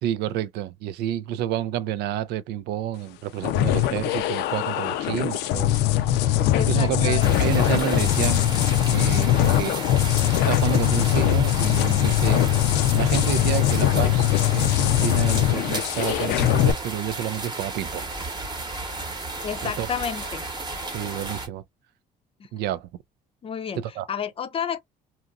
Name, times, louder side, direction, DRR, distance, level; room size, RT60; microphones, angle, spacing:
voice 1, 0.0-5.8 6.6-8.4 8.9-9.7 10.4-12.4 12.9-18.1 19.6-19.9 20.9-21.6 22.5-22.9 23.7-24.1, right 11 dB, 80° right, 0.4 m, -29 dB
sound 1, 3.4-16.7, left 13 dB, 85° left, 0.5 m, -21 dB
voice 2, 6.5-7.5 19.4-20.4 22.4-22.5 23.4-24.8, left 7 dB, 35° left, 0.5 m, -31 dB
sound 2, 7.2-21.5, right 2 dB, 25° right, 0.9 m, -34 dB
2.9 x 2.4 x 2.3 m
cardioid pair, 110°, 17 cm